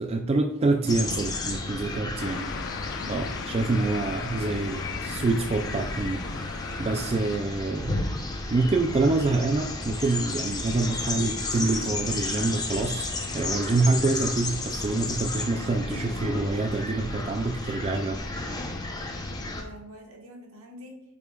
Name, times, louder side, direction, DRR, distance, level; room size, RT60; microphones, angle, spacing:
voice 1, 0.0-2.5 3.1-6.2 6.8-8.0 8.5-18.2, right 3 dB, 30° right, 4 dB, 0.3 m, -26 dB
sound 1, 0.9-19.6, left 2 dB, 20° left, 0.7 m, -33 dB
voice 2, 1.6-2.1 3.0-3.2 19.5-21.0, equal, 75° right, 1 dB, 1.4 m, -46 dB
sound 2, 2.2-7.4, left 7 dB, 55° left, 0.4 m, -38 dB
8.1 x 5.0 x 2.3 m, 0.81 s
head